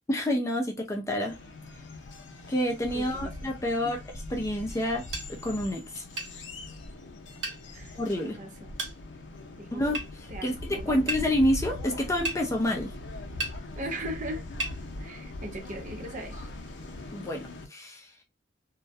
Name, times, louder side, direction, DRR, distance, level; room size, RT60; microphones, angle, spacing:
voice 1, 0.1-1.4 2.5-4.0 4.3-6.0 8.0-8.4 9.7-12.9 17.1-18.1, left 1 dB, 15° left, 0.4 m, -28 dB
sound 1, 1.3-17.7, left 2 dB, 80° left, 0.6 m, -41 dB
voice 2, 2.9-3.5 3.8-4.0 7.7-8.8 9.6-9.9 10.3-11.0 13.8-14.4 15.0-16.5, right 1 dB, 45° right, 0.6 m, -39 dB
sound 2, 5.1-5.3 6.2-6.3 7.4-7.6 8.8-9.0 9.9-10.1 11.1-11.2 12.2-12.4 13.4-13.6 14.6-14.8, right 2 dB, 90° right, 0.9 m, -32 dB
2.3 x 2.1 x 2.6 m
head